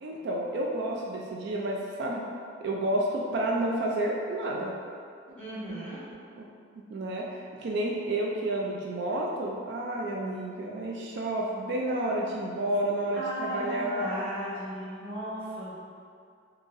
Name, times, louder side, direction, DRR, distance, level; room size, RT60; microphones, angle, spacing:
voice 1, 0.0-2.2 2.6-4.7 6.4-6.5 6.9-14.2, right 1 dB, 60° right, -2 dB, 0.3 m, -30 dB
voice 2, 5.4-6.0 13.1-15.7, equal, 5° left, -12 dB, 1.3 m, -35 dB
3.8 x 2.8 x 2.5 m, 2.3 s
head